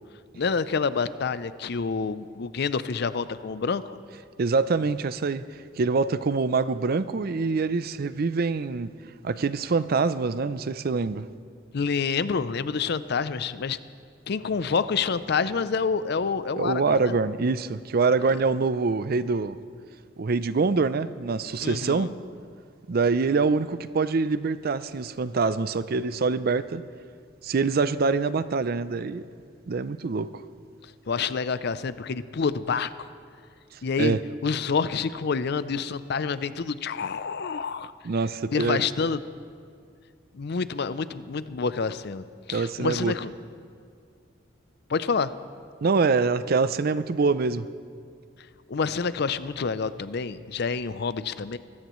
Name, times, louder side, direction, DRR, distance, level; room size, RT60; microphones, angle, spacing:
voice 1, 0.4-4.0 11.7-13.8 14.3-17.2 21.6-22.1 31.1-32.9 33.8-34.2 34.4-37.9 38.5-39.2 40.3-42.2 42.5-43.3 44.9-45.3 48.7-51.6, left 5 dB, 60° left, 0.5 m, -28 dB
voice 2, 4.4-5.4 5.8-8.9 9.2-11.2 16.6-19.6 20.2-22.1 22.9-26.8 27.4-29.2 29.7-30.4 34.0-34.2 38.0-38.8 42.5-43.1 45.8-47.7, right 4 dB, 50° right, 0.5 m, -25 dB
24.5 x 15.0 x 3.1 m
head